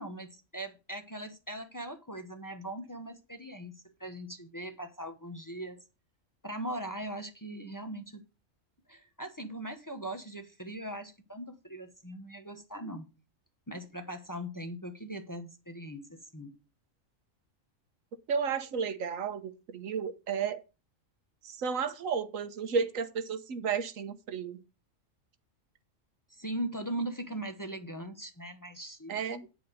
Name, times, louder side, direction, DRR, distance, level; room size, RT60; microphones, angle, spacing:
voice 1, 0.0-3.7 4.0-5.8 6.4-8.2 8.9-13.1 13.7-16.5 26.3-29.2, right 1 dB, 15° left, 0.9 m, -40 dB
voice 2, 18.3-20.6 21.4-24.6 29.1-29.5, right 6 dB, 85° right, 1.4 m, -33 dB
9.2 x 5.1 x 6.4 m
omnidirectional pair, 1.3 m